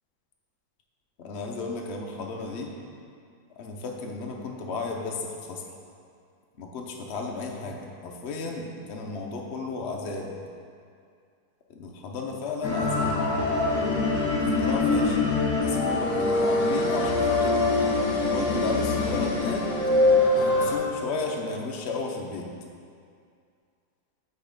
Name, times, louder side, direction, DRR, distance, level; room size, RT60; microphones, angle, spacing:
voice 1, 1.2-2.8 3.6-5.6 6.6-10.3 11.7-13.2 14.4-15.3 15.6-17.7 18.2-19.7 20.3-22.5, left 3 dB, 65° left, 0 dB, 0.6 m, -34 dB
sound 1, 12.6-20.8, left 2 dB, 50° left, 1.4 m, -24 dB
8.5 x 4.1 x 5.1 m, 2.3 s
omnidirectional pair, 2.0 m